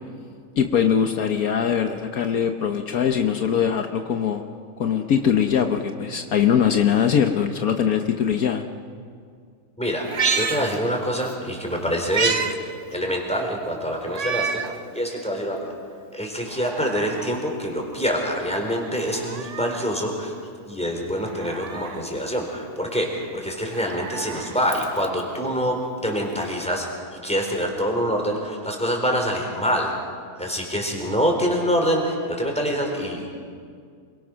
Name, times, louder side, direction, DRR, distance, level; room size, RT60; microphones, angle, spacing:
voice 1, 0.6-4.4 4.8-8.6, left 8 dB, 70° left, 6 dB, 1.5 m, -21 dB
voice 2, 9.8-10.1 10.3-12.4 12.9-14.6 14.9-15.7 16.1-20.3 20.7-26.9 27.2-29.9 30.4-33.3, equal, 5° left, 1 dB, 4.2 m, -25 dB
Meow, 10.0-11.3 11.7-12.6 12.9-13.0 14.1-14.8 15.3-15.4 16.4-17.4 18.9-19.9 21.2-22.1 23.5-25.2 26.4-26.5, right 5 dB, 55° right, 1.5 m, -29 dB
26.5 x 23.0 x 6.3 m, 2.2 s
omnidirectional pair, 1.6 m